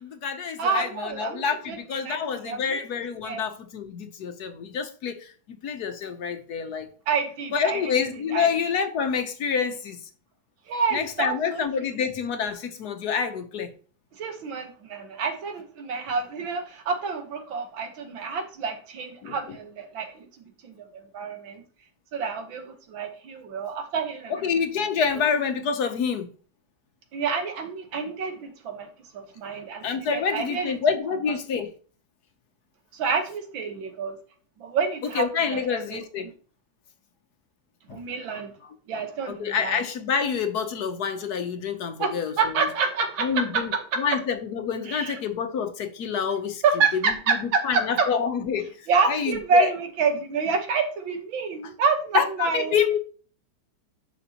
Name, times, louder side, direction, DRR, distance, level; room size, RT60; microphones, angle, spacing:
voice 1, 0.0-6.9 7.5-10.0 10.9-13.7 19.2-19.6 24.3-26.3 29.8-31.7 35.1-36.3 37.9-38.0 39.4-42.3 43.2-43.7 44.0-46.6 46.9-47.4 47.6-48.8 49.1-49.7 52.1-53.0, left 6 dB, 60° left, 1.2 m, -27 dB
voice 2, 0.6-2.2 2.4-2.8 3.2-3.4 7.1-7.9 8.3-8.5 10.7-11.9 14.2-21.6 22.1-24.5 24.7-24.8 27.1-28.9 29.1-30.8 32.9-34.2 34.6-35.2 35.5-36.3 37.9-38.5 38.9-39.8 42.0-44.0 44.9-45.2 46.6-48.1 48.9-52.8, right 5 dB, 90° right, 2.0 m, -28 dB
10.5 x 6.0 x 2.9 m
omnidirectional pair, 2.1 m